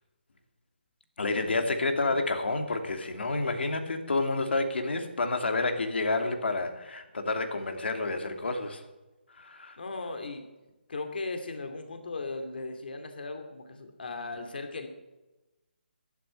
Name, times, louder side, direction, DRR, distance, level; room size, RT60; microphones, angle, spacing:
voice 1, 1.2-8.8 9.4-9.8, left 2 dB, 75° left, 6 dB, 2.7 m, -29 dB
voice 2, 9.8-10.4 10.9-14.9, left 3 dB, 55° left, 6 dB, 2.4 m, -37 dB
11.5 x 11.5 x 10.0 m, 1.1 s
hypercardioid pair, 175°, 6 cm